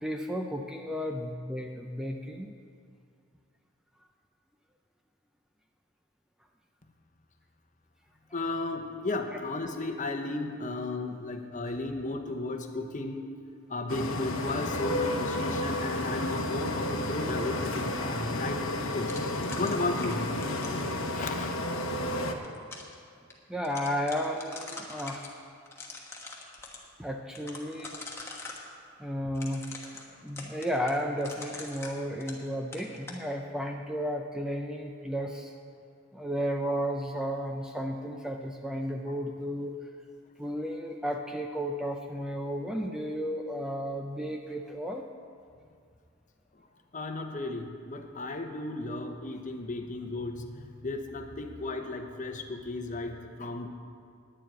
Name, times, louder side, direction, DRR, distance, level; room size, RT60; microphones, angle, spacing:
voice 1, 0.0-2.5 11.6-11.8 23.5-25.3 27.0-28.0 29.0-29.6 30.2-35.5 36.1-39.8 40.4-45.0, equal, 5° right, 2 dB, 0.5 m, -33 dB
voice 2, 8.3-13.3 13.7-19.1 19.6-20.4 21.1-21.5 46.9-50.4 50.8-53.7, left 2 dB, 35° left, 5 dB, 0.9 m, -34 dB
sound 1, 13.9-22.3, left 1 dB, 80° left, 1.0 m, -31 dB
sound 2, 19.1-21.4 22.2-22.9 23.3-23.4 23.6-25.3 25.7-26.8 27.4-28.6 29.3-32.5 32.7-33.2, left 3 dB, 15° left, 1.2 m, -43 dB
10.0 x 7.5 x 9.0 m, 2.2 s
head